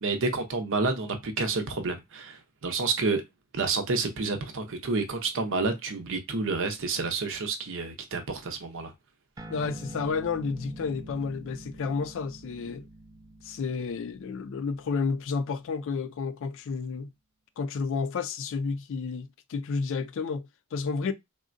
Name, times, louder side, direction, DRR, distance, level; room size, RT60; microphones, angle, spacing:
voice 1, 0.0-3.2 3.5-8.9, right 3 dB, 60° right, 0.7 m, -29 dB
sound 1, 9.4-16.2, right 1 dB, 15° right, 0.3 m, -46 dB
voice 2, 9.5-12.8 13.4-17.1 17.6-21.1, left 5 dB, 60° left, 0.3 m, -31 dB
3.6 x 2.1 x 2.5 m
head